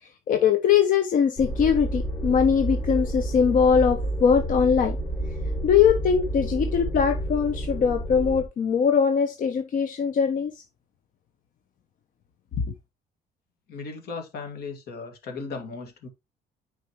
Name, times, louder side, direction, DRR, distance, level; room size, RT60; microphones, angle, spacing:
voice 1, 0.3-5.0 5.6-10.5, left 7 dB, 50° left, 0.9 m, -21 dB
sound 1, 1.4-8.4, right 1 dB, 30° left, 2.7 m, -30 dB
voice 2, 13.7-16.1, left 4 dB, 70° left, 2.2 m, -36 dB
9.2 x 4.6 x 3.1 m
cardioid pair, 110°, 17 cm